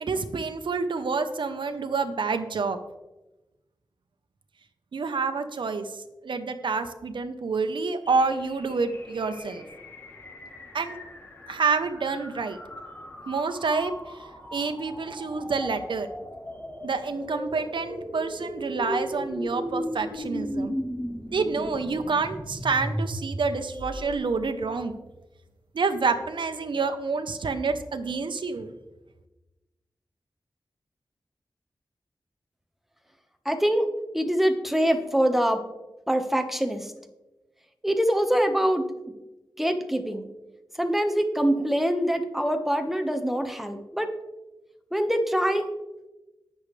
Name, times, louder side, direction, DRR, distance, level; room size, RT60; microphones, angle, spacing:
voice 1, 0.0-2.8 4.9-5.9 6.2-9.6 10.7-11.0 11.5-12.6 13.3-13.9 14.5-16.1 16.8-20.7 21.3-24.9 25.7-28.7, right 4 dB, 85° right, 7 dB, 0.8 m, -28 dB
sound 1, 8.0-24.3, equal, 20° left, 4.0 m, -37 dB
voice 2, 33.4-33.9 34.1-35.6 36.1-36.9 37.8-38.8 39.6-40.3 40.8-44.1 44.9-45.7, equal, 5° right, 6 dB, 1.3 m, -24 dB
19.0 x 6.4 x 3.3 m, 1.0 s
wide cardioid pair, 60°, 8 cm